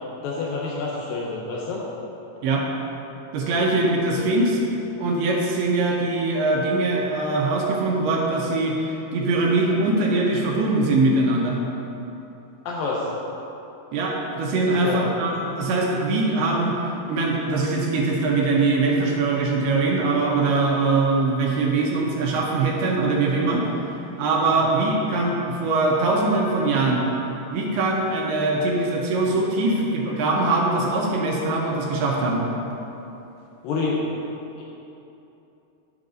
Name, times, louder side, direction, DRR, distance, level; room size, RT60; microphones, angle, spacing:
voice 1, 0.2-1.9 12.7-13.1 14.8-15.0 24.4-24.5 33.6-34.1 34.6-34.7, left 3 dB, 85° left, -4 dB, 2.0 m, -28 dB
voice 2, 3.3-4.6 5.0-11.6 13.9-23.7 24.2-27.1 27.5-32.4, right 2 dB, 75° right, -2 dB, 2.6 m, -22 dB
13.0 x 5.8 x 2.6 m, 3.0 s
omnidirectional pair, 5.0 m